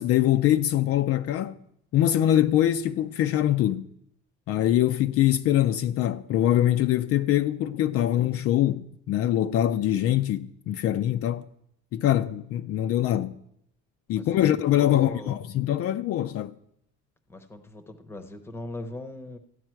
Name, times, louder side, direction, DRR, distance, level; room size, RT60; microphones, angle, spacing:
voice 1, 0.0-1.6 1.9-3.9 4.5-11.4 11.9-13.3 14.1-16.5, left 12 dB, 50° left, 0.5 m, -23 dB
voice 2, 14.1-14.5 14.7-15.4 17.3-19.4, left 2 dB, 10° left, 0.8 m, -39 dB
14.0 x 9.7 x 4.5 m
cardioid pair, 170°, 30 cm